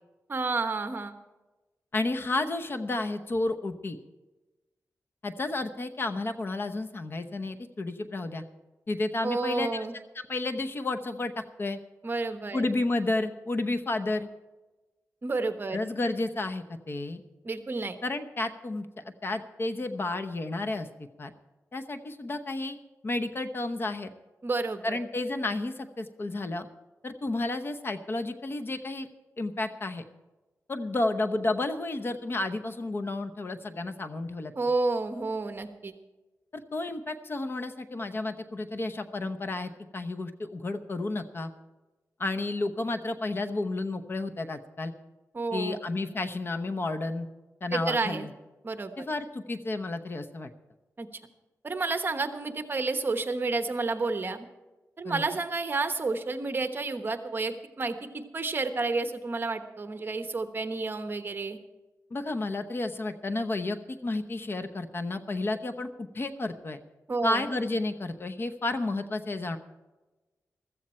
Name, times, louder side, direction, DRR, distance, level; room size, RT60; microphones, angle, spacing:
voice 1, 0.3-1.1 9.2-10.0 12.0-12.6 15.2-15.8 17.4-18.0 24.4-25.0 34.5-35.9 45.3-45.8 47.7-48.3 48.6-49.1 51.0-51.1 51.6-54.5 55.0-61.6 67.1-67.4, right 3 dB, 35° right, 8 dB, 1.1 m, -30 dB
voice 2, 1.9-4.0 5.2-8.4 8.9-9.9 10.3-11.8 12.5-14.3 15.7-17.2 18.0-18.9 19.2-21.3 21.7-22.8 23.0-24.1 24.8-26.7 27.0-29.1 29.4-30.0 30.7-34.5 36.5-41.5 42.2-44.9 45.5-47.3 47.6-48.3 49.0-50.5 55.0-55.2 62.1-66.8 67.2-69.6, left 2 dB, 40° left, 8 dB, 0.9 m, -31 dB
15.0 x 13.5 x 4.4 m, 1.1 s
wide cardioid pair, 110°, 6 cm